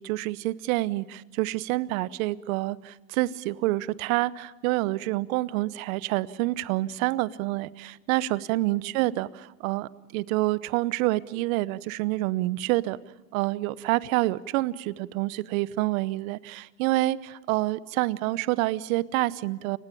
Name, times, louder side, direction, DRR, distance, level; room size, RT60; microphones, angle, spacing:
voice 1, 0.0-13.0 13.3-19.8, right 18 dB, 60° right, 19 dB, 1.0 m, -27 dB
29.0 x 16.5 x 8.6 m, 1.1 s
hypercardioid pair, 105°, 48 cm